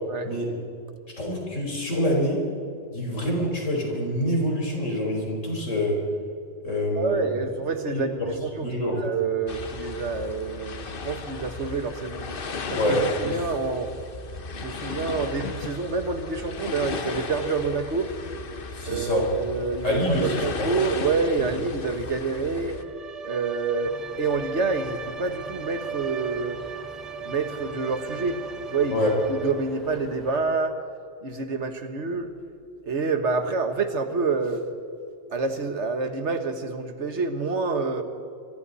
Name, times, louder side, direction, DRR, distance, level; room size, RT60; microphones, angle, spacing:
voice 1, 1.2-2.4 2.9-6.0 6.6-7.1 7.9-8.3 8.6-9.1 12.8-13.4 18.7-19.2 19.8-20.7 28.9-29.2, equal, 85° left, -1 dB, 4.9 m, -26 dB
voice 2, 6.9-12.3 12.7-13.9 14.6-18.1 18.8-22.8 23.2-26.6 27.2-28.4 28.7-30.8 31.2-32.3 32.8-34.7 35.3-38.0, right 4 dB, 65° right, 7 dB, 1.7 m, -27 dB
sound 1, 9.5-22.8, left 4 dB, 50° left, 1.2 m, -35 dB
Bowed string instrument, 22.7-29.8, right 6 dB, 30° right, 1.0 m, -38 dB
sound 2, 23.8-30.4, equal, ahead, 5.1 m, -47 dB
27.5 x 22.5 x 4.2 m, 2.5 s
omnidirectional pair, 1.3 m